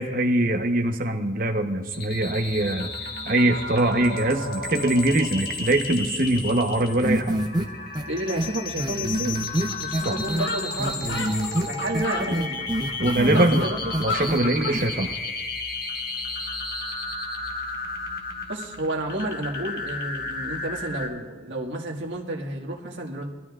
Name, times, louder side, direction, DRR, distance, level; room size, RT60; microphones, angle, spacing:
voice 1, 0.0-2.9 3.3-7.4 10.0-10.2 13.0-13.6 14.0-15.1, right 1 dB, 45° right, 5 dB, 1.0 m, -23 dB
sound 1, 1.9-21.1, left 3 dB, 50° left, 1.6 m, -33 dB
sound 2, 7.0-7.6 8.0-8.1 8.4-8.5 8.8-10.5 10.8-11.7 11.9-13.6 13.9-14.4 14.7-14.9, right 1 dB, 20° right, 0.8 m, -26 dB
voice 2, 8.1-9.4 9.8-11.3 11.7-12.7 13.3-13.9 14.5-14.7 18.5-23.3, right 1 dB, 80° right, 0 dB, 1.7 m, -31 dB
sound 3, 9.7-9.8 10.0-10.1 10.4-12.3 12.8-14.8, left 2 dB, 80° left, 1.5 m, -31 dB
23.0 x 13.0 x 2.5 m, 1.4 s
head